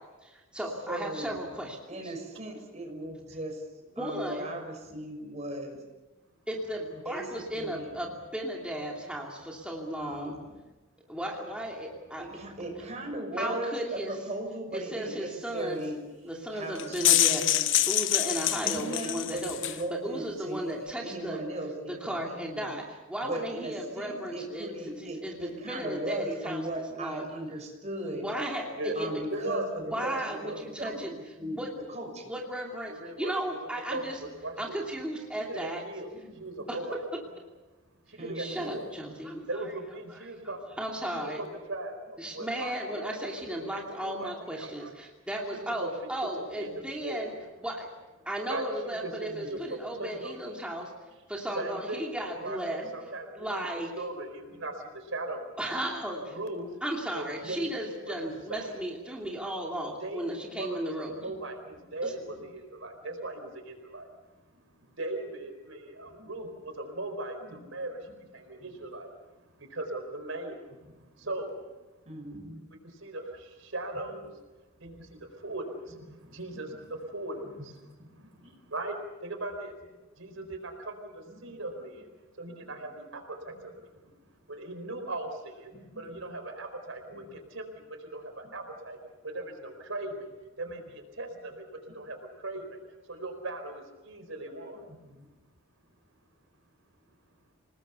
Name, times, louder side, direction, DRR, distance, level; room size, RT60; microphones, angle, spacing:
voice 1, 0.2-1.8 2.0-2.1 4.0-4.5 6.5-10.3 11.1-12.5 13.4-14.1 14.7-15.8 16.2-17.4 17.9-19.6 19.9-21.4 21.9-26.6 27.0-27.3 28.0-29.1 29.9-31.1 31.5-31.7 32.3-34.2 34.6-35.8 36.7-37.0 38.4-39.5 40.8-41.4 42.2-47.3 47.6-47.9 48.3-50.9 51.3-52.8 53.4-53.9 55.6-56.4 56.8-61.1 62.0-62.1, right 1 dB, 5° right, -2 dB, 2.7 m, -35 dB
voice 2, 0.9-1.4 1.9-3.6 4.0-5.8 6.9-7.9 10.0-10.6 12.2-16.0 16.5-17.7 18.5-22.7 23.2-28.3 28.9-32.4 38.2-38.7 49.3-49.5 52.8-52.9 57.4-57.5 58.3-58.4 61.1-61.3 66.2-66.3 67.5-67.6 68.6-68.7 70.9-71.0 72.1-72.7 74.8-75.1 76.2-76.8 78.0-78.5 80.3-80.5 81.4-81.6 82.5-82.7 83.5-83.6 85.7-86.0 87.1-87.3 88.4-88.5 91.9-92.0 94.9-95.3, right 1 dB, 35° right, 2 dB, 6.2 m, -38 dB
sound 1, 16.8-19.8, left 13 dB, 65° left, 0.9 m, -25 dB
voice 3, 29.3-30.6 32.9-33.6 33.9-34.8 35.5-37.0 38.1-38.9 39.5-40.6 41.1-44.9 45.5-46.1 46.4-46.7 47.0-47.3 48.5-50.5 51.5-52.1 52.4-53.6 54.0-55.6 56.2-56.7 57.1-58.8 60.0-64.1 64.8-70.6 71.1-71.5 72.3-72.4 72.8-74.3 74.8-77.8 78.1-79.7 80.2-82.1 82.4-84.0 84.5-85.7 86.0-89.0 89.2-90.3 90.6-91.7 91.9-92.8 93.0-94.9, right 2 dB, 75° right, 6 dB, 4.4 m, -39 dB
28.0 x 19.5 x 6.9 m, 1.1 s
head